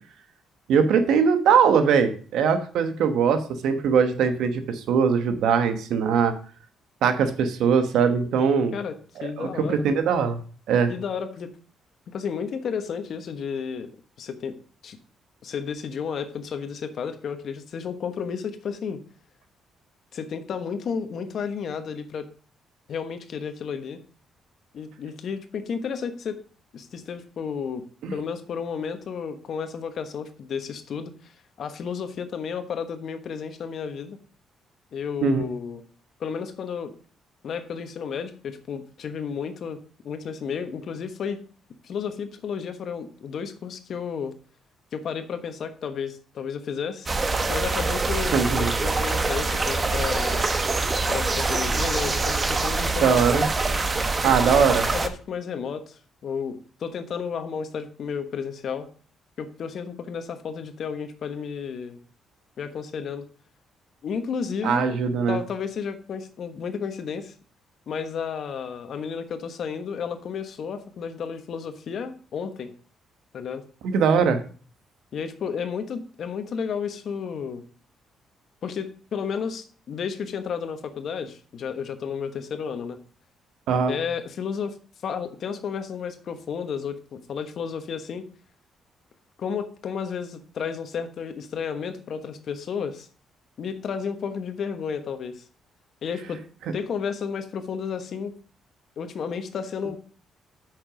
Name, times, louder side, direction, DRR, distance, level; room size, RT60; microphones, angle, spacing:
voice 1, 0.7-6.3 7.0-8.7 9.2-10.4 10.7-10.9 28.0-28.1 35.2-35.4 48.3-48.7 53.0-53.5 54.2-54.9 64.6-65.4 73.8-74.4 83.7-83.9, right 6 dB, 80° right, 9 dB, 1.2 m, -21 dB
voice 2, 8.7-9.9 10.9-11.5 12.1-13.9 14.2-14.6 14.8-15.0 15.4-19.0 20.1-22.3 22.9-24.0 24.7-26.4 26.7-27.9 28.1-34.2 34.9-35.8 36.2-36.9 37.4-39.8 40.0-41.4 41.8-44.3 44.9-47.1 47.5-50.5 51.1-53.5 54.2-54.6 54.9-58.9 59.4-62.0 62.6-63.3 64.0-65.0 65.3-67.3 67.9-72.7 73.3-73.6 75.1-77.6 78.6-83.0 83.9-84.8 85.0-88.3 89.4-93.1 93.6-95.4 96.0-96.4 96.7-98.3 99.0-100.0, left 6 dB, 60° left, 8 dB, 1.2 m, -32 dB
sound 1, 47.1-55.1, right 3 dB, 30° right, 1.0 m, -25 dB
8.6 x 6.3 x 5.1 m, 0.42 s
cardioid pair, 90°, 0 cm